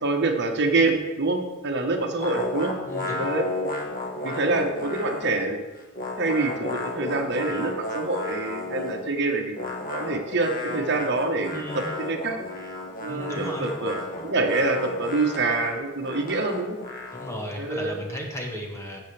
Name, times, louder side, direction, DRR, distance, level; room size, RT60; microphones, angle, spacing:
voice 1, 0.0-2.7 3.2-3.4 4.2-5.6 6.2-9.5 9.9-12.4 13.0-16.8 17.6-18.0, right 3 dB, 50° right, 4 dB, 1.2 m, -26 dB
sound 1, 2.2-5.5 5.7-9.1 9.5-17.6, left 2 dB, 40° left, 1.5 m, -33 dB
voice 2, 2.9-3.3 11.5-11.9 13.1-13.7 17.1-19.0, equal, 15° left, 1 dB, 1.4 m, -34 dB
13.0 x 8.0 x 3.4 m, 1.1 s
head